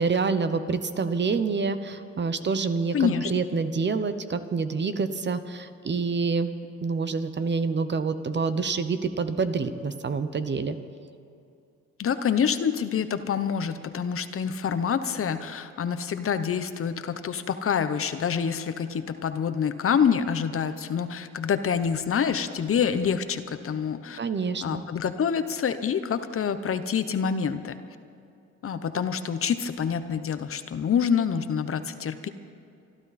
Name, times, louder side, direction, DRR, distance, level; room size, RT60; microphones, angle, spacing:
voice 1, 0.0-6.5 6.8-10.8 24.2-24.8, right 4 dB, 35° right, 11 dB, 1.0 m, -27 dB
voice 2, 2.9-3.3 12.0-24.2 24.6-27.7 28.6-32.3, left 7 dB, 45° left, 11 dB, 0.9 m, -27 dB
26.0 x 12.0 x 4.2 m, 2.5 s
cardioid pair, 90°, 30 cm